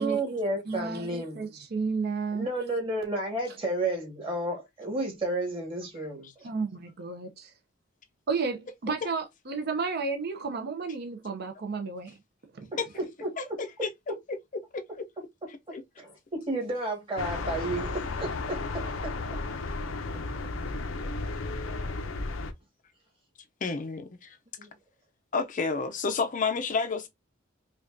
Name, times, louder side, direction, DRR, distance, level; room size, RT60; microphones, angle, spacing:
voice 1, 0.0-1.4 2.3-6.5 12.7-13.6 16.0-19.1 24.6-24.7, right 1 dB, 25° right, 1.6 m, -32 dB
voice 2, 0.7-2.5 6.4-7.5 8.3-12.2 12.6-12.7, right 4 dB, 50° right, 0.6 m, -32 dB
sound 1, 17.2-22.5, left 3 dB, 90° left, 0.6 m, -33 dB
voice 3, 23.6-24.4 25.3-27.1, left 4 dB, 40° left, 0.5 m, -29 dB
5.0 x 2.3 x 2.6 m
head